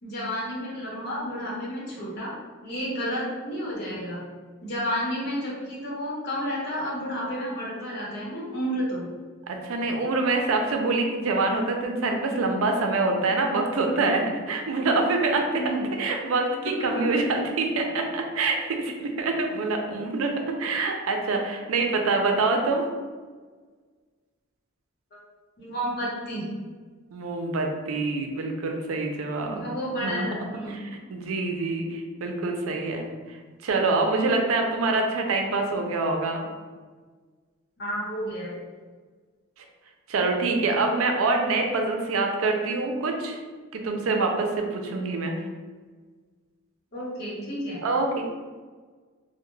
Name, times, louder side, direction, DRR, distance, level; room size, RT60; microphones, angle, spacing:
voice 1, 0.0-2.3 2.6-4.2 4.6-9.1 15.6-15.9 16.8-17.1 25.6-26.5 29.5-30.8 37.8-38.6 46.9-47.8, equal, 55° left, -6 dB, 0.9 m, -31 dB
voice 2, 9.5-15.6 16.0-22.9 27.1-29.7 30.0-30.3 30.7-33.4 33.6-36.4 40.1-43.4 43.7-45.4 47.8-48.2, right 3 dB, 90° right, 3 dB, 0.4 m, -25 dB
2.2 x 2.1 x 3.0 m, 1.4 s
head